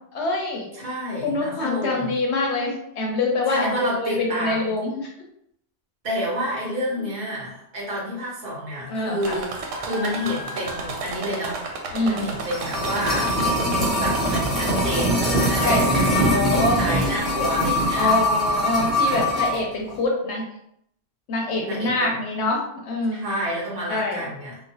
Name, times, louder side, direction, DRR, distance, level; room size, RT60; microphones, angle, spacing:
voice 1, 0.1-0.7 1.2-5.1 7.0-7.1 8.9-9.4 11.9-12.4 15.6-15.8 16.1-16.8 17.9-20.4 21.3-23.2 23.9-24.2, left 2 dB, 70° left, 0 dB, 0.8 m, -25 dB
voice 2, 0.7-2.1 3.5-4.7 6.0-9.5 9.8-11.6 12.0-13.4 14.0-18.1 21.6-22.1 23.1-24.6, equal, 50° right, -4 dB, 1.1 m, -29 dB
sound 1, 9.2-16.2 16.7-17.4 18.2-18.3 18.7-18.8, right 2 dB, 85° right, 0.9 m, -33 dB
sound 2, 12.2-19.6 19.9-20.0, equal, ahead, 0.7 m, -22 dB
3.0 x 2.0 x 2.7 m, 0.75 s
omnidirectional pair, 1.3 m